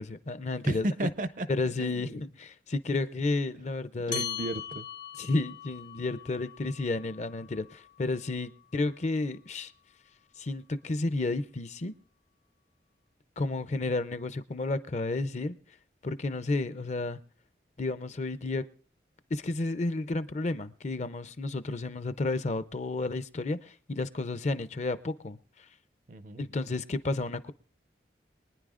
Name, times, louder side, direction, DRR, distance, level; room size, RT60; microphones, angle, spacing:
voice 1, 0.0-0.9 1.5-4.2 5.2-9.7 10.4-11.9 13.4-15.5 16.0-17.2 17.8-18.6 19.3-25.4 26.4-27.5, left 2 dB, 40° left, 14 dB, 0.5 m, -31 dB
voice 2, 0.6-1.5 1.8-2.1 4.1-4.9 26.1-26.5, right 1 dB, 45° right, 12 dB, 0.5 m, -33 dB
sound 1, 4.1-8.9, left 9 dB, 85° left, 1.0 m, -41 dB
24.0 x 9.8 x 2.5 m, 0.41 s
head